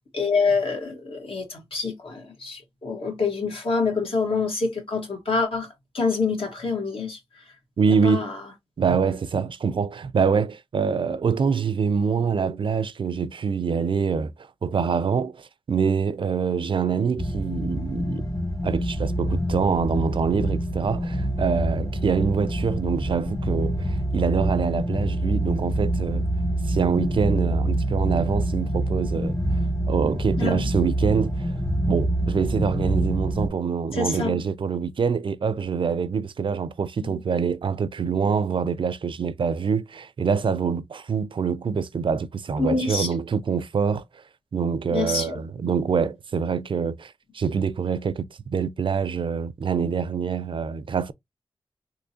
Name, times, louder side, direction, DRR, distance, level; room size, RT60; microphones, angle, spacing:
voice 1, 0.1-7.4 8.0-8.4 29.1-29.2 30.4-30.7 33.9-34.4 37.0-37.2 42.6-43.1 44.9-45.4, left 4 dB, 75° left, 1.6 m, -26 dB
voice 2, 7.8-8.3 8.8-14.3 14.6-18.3 18.6-26.3 26.7-29.4 29.9-31.5 31.9-44.0 44.5-51.1, right 6 dB, 60° right, 0.4 m, -25 dB
sound 1, 17.2-33.5, right 1 dB, 35° left, 1.2 m, -26 dB
3.7 x 3.0 x 2.8 m
cardioid pair, 45°, 10 cm